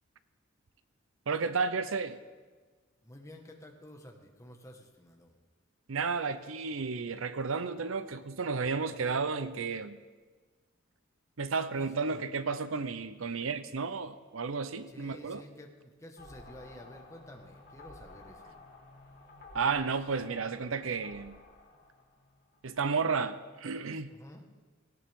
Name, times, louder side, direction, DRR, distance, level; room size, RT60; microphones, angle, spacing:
voice 1, 1.3-2.2 5.9-10.0 11.4-15.4 19.5-21.4 22.6-24.1, right 5 dB, 75° right, 12 dB, 0.7 m, -32 dB
voice 2, 3.0-5.3 11.7-12.4 14.9-18.6 24.1-24.4, left 1 dB, 15° left, 2 dB, 1.7 m, -51 dB
sound 1, 16.2-22.9, left 2 dB, 60° left, 2.9 m, -53 dB
18.5 x 18.0 x 3.8 m, 1.4 s
head